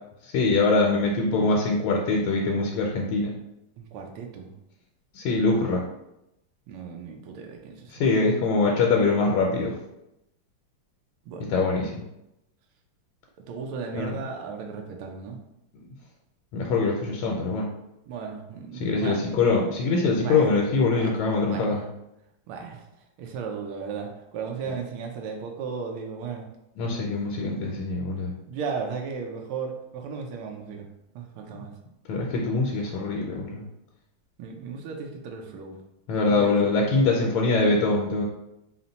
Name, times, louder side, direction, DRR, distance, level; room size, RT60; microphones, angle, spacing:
voice 1, 0.2-3.3 5.1-5.8 8.0-9.7 11.5-11.9 13.9-14.2 16.5-17.7 18.8-21.8 26.8-28.3 32.1-33.6 36.1-38.2, left 3 dB, 80° left, -1 dB, 1.4 m, -23 dB
voice 2, 3.8-4.5 6.7-8.0 11.3-11.4 13.5-15.4 18.1-19.3 20.2-20.5 20.9-21.1 21.5-21.7 22.5-22.8 23.2-26.4 28.5-30.9 31.1-31.7 34.4-35.8 36.2-36.7, right 5 dB, 90° right, 2 dB, 1.5 m, -35 dB
4.1 x 2.1 x 3.9 m, 0.87 s
omnidirectional pair, 2.3 m